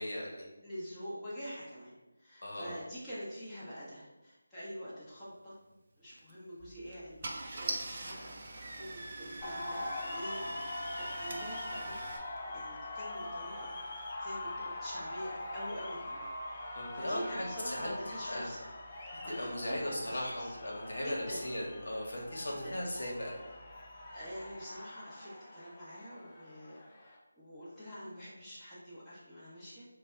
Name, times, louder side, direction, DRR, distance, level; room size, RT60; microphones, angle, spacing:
voice 1, 0.0-0.5 2.4-2.8 16.7-17.9 18.3-18.5 19.3-23.3, left 1 dB, 65° left, -2 dB, 1.0 m, -37 dB
voice 2, 0.6-1.9 2.2-5.5 6.0-10.6 11.0-11.9 12.4-16.3 16.7-18.6 19.2-20.5 21.0-21.4 22.5-22.8 24.1-29.9, equal, 5° left, -13 dB, 0.9 m, -46 dB
Car / Engine starting, 6.1-6.3 6.9-7.0 7.2-12.2, right 2 dB, 45° right, 0.5 m, -42 dB
sound 1, 6.6-24.6, equal, 10° right, 1.2 m, -61 dB
sound 2, 9.4-27.2, left 1 dB, 25° left, 0.5 m, -43 dB
3.2 x 2.2 x 4.3 m, 1.0 s
figure-of-eight pair, 165°, 0 cm